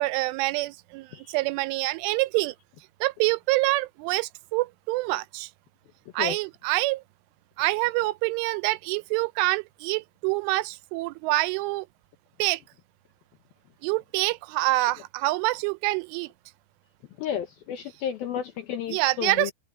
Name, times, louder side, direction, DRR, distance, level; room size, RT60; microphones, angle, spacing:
voice 1, 0.0-2.5 3.0-5.5 6.1-7.0 7.6-11.9 12.4-12.6 13.8-16.3 18.9-19.5, right 20 dB, 90° right, 3.2 m, -26 dB
voice 2, 17.2-19.5, left 9 dB, 75° left, 2.2 m, -32 dB
open air
omnidirectional pair, 5.5 m